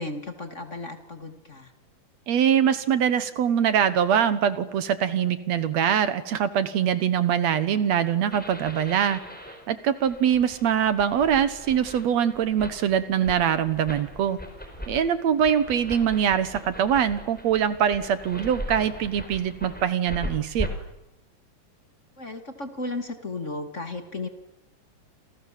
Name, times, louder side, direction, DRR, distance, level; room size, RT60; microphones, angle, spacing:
voice 1, 0.0-1.7 22.2-24.3, left 2 dB, 25° left, 7 dB, 1.8 m, -34 dB
voice 2, 2.3-9.2 9.7-14.4 14.9-20.7, right 8 dB, 65° right, 13 dB, 2.2 m, -23 dB
sound 1, 8.3-20.7, left 1 dB, 5° left, 4.2 m, -39 dB
29.5 x 26.5 x 7.5 m, 0.93 s
omnidirectional pair, 3.7 m